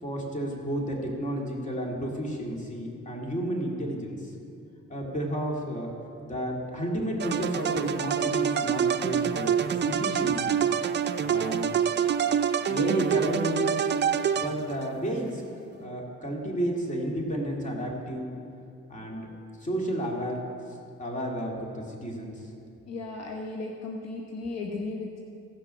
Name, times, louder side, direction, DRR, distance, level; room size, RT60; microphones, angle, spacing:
voice 1, 0.0-4.3 4.9-5.9 6.2-9.5 9.8-10.6 11.2-11.7 12.7-13.9 14.3-15.4 15.8-18.4 18.9-19.3 19.6-20.4 21.0-22.5, right 1 dB, 25° left, -1 dB, 2.5 m, -31 dB
sound 1, 7.2-14.9, right 8 dB, 35° right, 0.5 m, -26 dB
voice 2, 22.9-25.2, left 3 dB, 60° left, 1 dB, 1.1 m, -35 dB
16.0 x 6.2 x 5.7 m, 2.5 s
cardioid pair, 90°, 30 cm